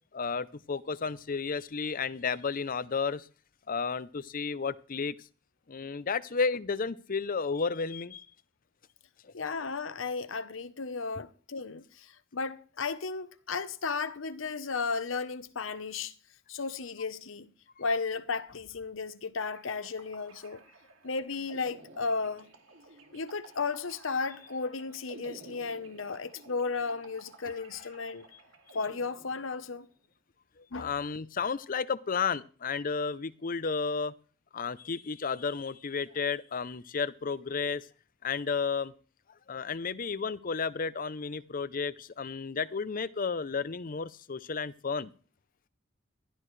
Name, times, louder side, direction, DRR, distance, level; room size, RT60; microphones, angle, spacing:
voice 1, 0.1-3.3 3.7-5.1 5.7-8.3 9.2-9.3 30.6-34.1 34.5-37.9 38.2-38.9 39.5-45.1, left 5 dB, 45° left, 0.6 m, -32 dB
voice 2, 9.3-16.1 16.5-17.5 17.8-20.6 21.0-22.5 23.1-28.2 28.7-29.9 30.7-30.9, left 4 dB, 80° left, 0.9 m, -34 dB
sound 1, 19.4-29.8, right 2 dB, 90° right, 2.2 m, -53 dB
15.5 x 12.0 x 3.3 m
head